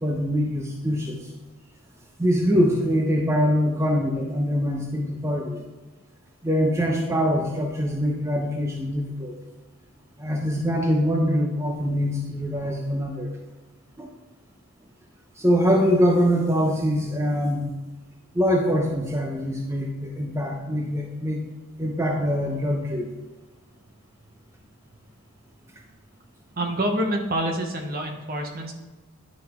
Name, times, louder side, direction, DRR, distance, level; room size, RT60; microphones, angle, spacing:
voice 1, 0.0-1.3 2.2-5.6 6.4-9.3 10.2-13.3 14.0-14.1 15.4-17.7 18.3-21.4 21.8-23.1, equal, 15° right, -1 dB, 0.6 m, -23 dB
voice 2, 26.6-28.7, right 1 dB, 45° right, 2 dB, 1.0 m, -27 dB
10.0 x 3.9 x 4.3 m, 1.2 s
head